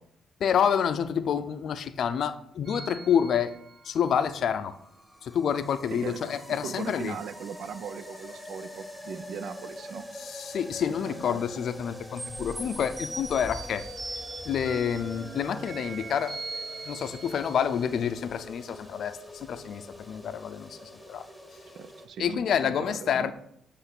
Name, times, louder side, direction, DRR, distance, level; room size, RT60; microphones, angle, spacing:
voice 1, 0.4-3.5 3.8-4.7 5.2-7.2 10.1-13.8 14.4-21.2 22.2-23.3, left 8 dB, 65° left, 12 dB, 0.5 m, -28 dB
sound 1, 2.6-4.2 12.2-17.9, right 2 dB, 25° right, 2.0 m, -40 dB
sound 2, 4.4-22.1, left 1 dB, ahead, 1.4 m, -45 dB
voice 2, 5.9-10.1 11.0-11.4 21.7-23.3, right 7 dB, 70° right, 13 dB, 0.5 m, -39 dB
7.9 x 3.2 x 6.0 m, 0.73 s
cardioid pair, 90°, 0 cm